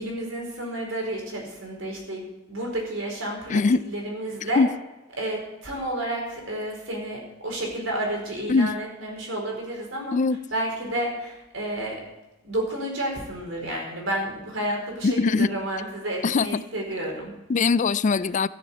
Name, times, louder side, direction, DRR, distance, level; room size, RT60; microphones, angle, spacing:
voice 1, 0.0-3.6 3.9-4.6 5.2-10.2 10.5-12.0 12.4-17.3, right 1 dB, 85° right, 0 dB, 4.6 m, -31 dB
voice 2, 3.5-3.8 4.6-4.7 8.5-8.7 10.1-10.4 15.0-15.5 16.2-16.6 17.5-18.5, left 4 dB, 40° left, 17 dB, 0.4 m, -21 dB
13.5 x 7.1 x 8.4 m, 1.0 s
head